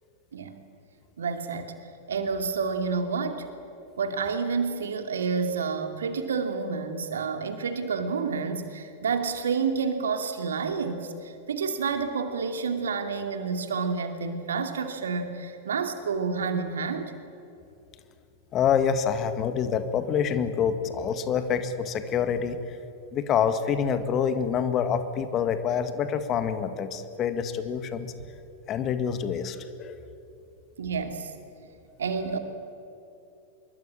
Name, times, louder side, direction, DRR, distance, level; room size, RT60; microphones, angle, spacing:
voice 1, 1.2-1.7 2.1-3.5 4.0-17.1 30.8-31.3 32.0-32.4, right 5 dB, 65° right, 7 dB, 2.5 m, -29 dB
voice 2, 18.5-22.8 23.1-28.1 28.7-29.9, left 7 dB, 30° left, 10 dB, 2.0 m, -26 dB
26.0 x 22.5 x 8.7 m, 2.8 s
figure-of-eight pair, 90°, 0 cm